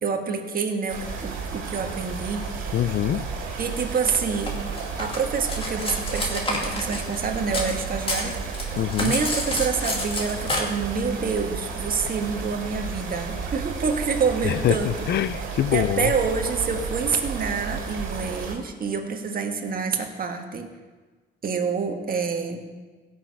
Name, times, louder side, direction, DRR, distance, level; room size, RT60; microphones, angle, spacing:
voice 1, 0.0-2.8 3.6-4.6 5.0-8.4 9.0-15.1 15.7-20.7 21.4-22.7, right 5 dB, 45° right, 1.5 m, -27 dB
sound 1, 0.9-18.5, right 5 dB, 80° right, 2.4 m, -33 dB
voice 2, 2.7-3.3 8.8-9.1 14.4-16.1, left 12 dB, 60° left, 0.5 m, -24 dB
Cutlery silverware, 4.5-7.8 8.0-10.6, left 1 dB, 25° left, 2.4 m, -29 dB
16.5 x 6.5 x 4.7 m
cardioid pair, 90°, 20 cm